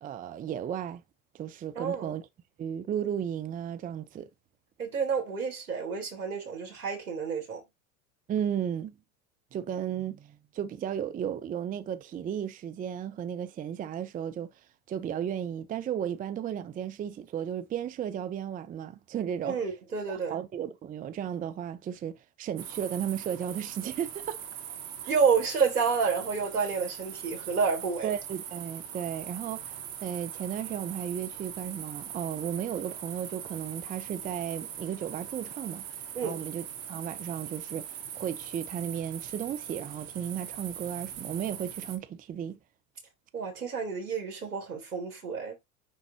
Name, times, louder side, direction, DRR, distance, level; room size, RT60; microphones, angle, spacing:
voice 1, 0.0-1.0 1.3-2.3 2.6-4.3 8.3-8.9 9.5-14.5 14.9-19.6 20.1-24.4 28.0-42.6, right 9 dB, 20° right, 0.6 m, -34 dB
voice 2, 1.8-2.1 4.8-7.6 19.4-20.4 25.1-28.1 36.1-36.4 43.3-45.6, right 5 dB, 80° right, 4.0 m, -29 dB
sound 1, 22.6-42.0, right 9 dB, 50° right, 2.4 m, -41 dB
10.0 x 3.9 x 2.9 m
hypercardioid pair, 90°, 44 cm